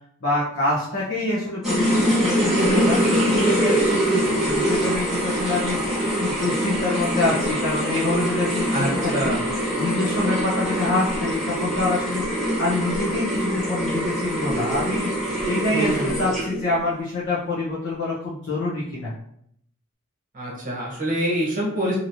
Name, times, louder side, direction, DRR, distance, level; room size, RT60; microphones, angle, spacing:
voice 1, 0.2-3.0 3.3-9.3 9.8-19.1, left 2 dB, 50° left, -9 dB, 0.8 m, -26 dB
sound 1, 1.6-16.7, equal, ahead, 1.0 m, -24 dB
voice 2, 2.5-2.9 8.7-9.4 15.7-16.2 20.3-21.9, right 1 dB, 35° right, -4 dB, 1.0 m, -25 dB
3.0 x 2.9 x 2.7 m, 0.70 s
head